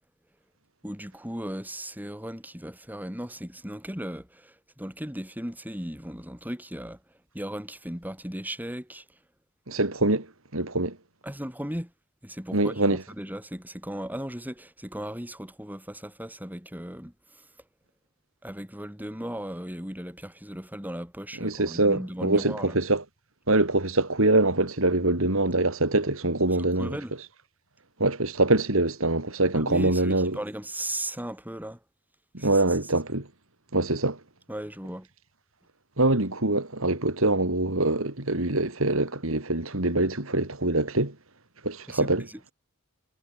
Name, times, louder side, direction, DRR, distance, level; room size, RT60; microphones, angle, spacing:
voice 1, 0.8-7.0 7.3-9.2 11.2-11.9 12.2-17.5 18.4-22.8 26.5-27.1 29.5-31.8 32.4-32.6 34.5-35.1 41.9-42.5, right 1 dB, 10° right, 7.2 m, -37 dB
voice 2, 9.7-10.3 10.5-11.0 12.5-13.0 21.4-23.0 23.5-27.0 28.0-30.4 32.3-33.3 33.7-34.2 36.0-41.1 41.6-42.2, right 2 dB, 65° right, 3.4 m, -24 dB
head